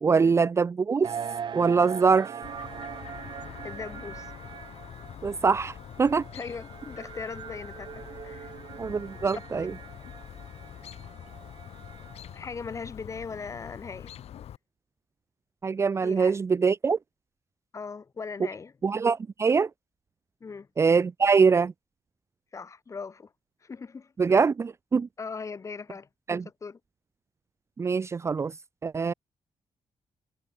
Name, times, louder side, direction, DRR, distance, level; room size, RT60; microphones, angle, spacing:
voice 1, 0.0-1.1 1.5-2.3 5.2-6.2 8.8-9.7 15.6-17.0 18.8-19.7 20.8-21.7 24.2-25.1 26.3-26.4 27.8-28.5 28.8-29.1, right 5 dB, 25° right, 0.6 m, -23 dB
sound 1, 1.0-12.4, right 7 dB, 45° right, 2.7 m, -41 dB
Chirp tweet, 2.4-14.6, left 10 dB, 75° left, 2.1 m, -45 dB
voice 2, 3.6-4.3 6.3-8.5 9.5-9.7 12.3-14.1 16.0-16.4 17.7-18.7 20.4-20.7 22.5-23.3 23.6-24.1 25.2-26.1 26.6-26.8, left 5 dB, 30° left, 4.6 m, -39 dB
wide cardioid pair, 180°, 11 cm